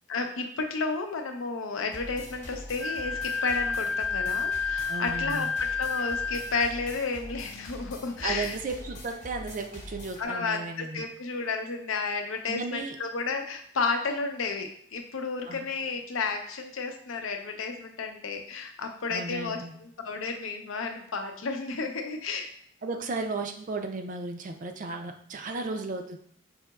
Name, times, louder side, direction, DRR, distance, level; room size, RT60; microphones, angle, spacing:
voice 1, 0.1-8.6 10.2-22.5, left 4 dB, 90° left, 5 dB, 0.6 m, -32 dB
sound 1, 1.9-10.3, left 1 dB, 40° left, 0.9 m, -43 dB
Wind instrument woodwind instrument, 2.8-6.7, left 5 dB, 10° left, 0.6 m, -30 dB
voice 2, 4.9-5.5 8.2-11.1 12.5-13.0 15.5-15.7 19.1-19.8 22.8-26.2, right 3 dB, 40° right, 5 dB, 0.4 m, -34 dB
5.5 x 2.9 x 2.3 m, 0.65 s
head